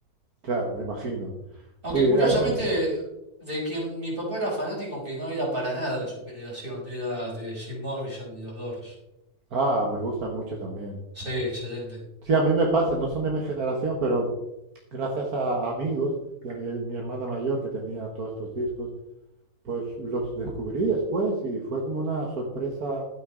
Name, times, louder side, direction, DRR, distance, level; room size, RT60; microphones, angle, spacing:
voice 1, 0.4-1.3 1.9-2.5 9.5-11.0 12.2-14.3 14.9-16.1 16.4-18.9 19.7-23.0, right 2 dB, 70° right, 0 dB, 1.9 m, -27 dB
voice 2, 1.8-3.0 3.4-8.9 11.1-12.0, right 1 dB, 35° right, -4 dB, 5.1 m, -30 dB
12.0 x 9.5 x 3.8 m, 0.90 s
omnidirectional pair, 1.7 m